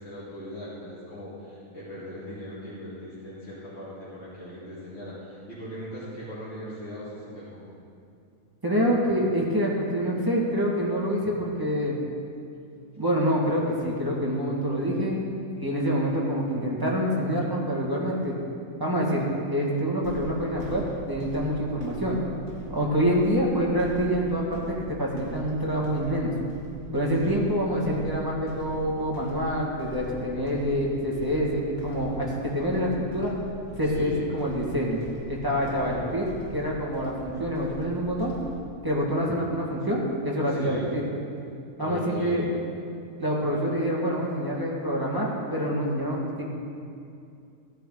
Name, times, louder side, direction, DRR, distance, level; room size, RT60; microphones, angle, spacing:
voice 1, 0.0-7.6 27.2-27.4 33.8-34.2 35.7-36.0 40.5-40.9 41.8-42.4, equal, 45° left, -11 dB, 3.4 m, -39 dB
voice 2, 8.6-12.0 13.0-15.2 15.5-18.4 18.8-22.2 22.7-26.3 26.9-33.3 33.8-35.0 35.3-38.3 38.8-41.0 41.8-42.5 43.2-46.4, equal, 15° right, -5 dB, 1.8 m, -26 dB
sound 1, 20.0-38.6, right 2 dB, 30° right, 2.4 m, -43 dB
16.5 x 10.0 x 3.9 m, 2.5 s
omnidirectional pair, 1.6 m